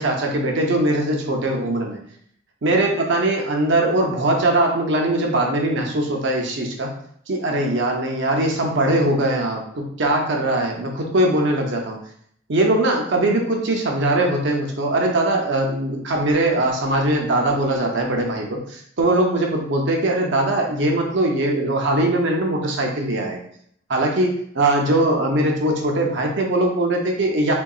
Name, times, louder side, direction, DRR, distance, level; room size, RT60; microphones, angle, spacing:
voice 1, 0.0-2.0 2.6-6.9 7.3-12.0 12.5-23.4 23.9-27.5, right 1 dB, 60° right, 1 dB, 0.6 m, -21 dB
3.7 x 2.2 x 2.3 m, 0.67 s
head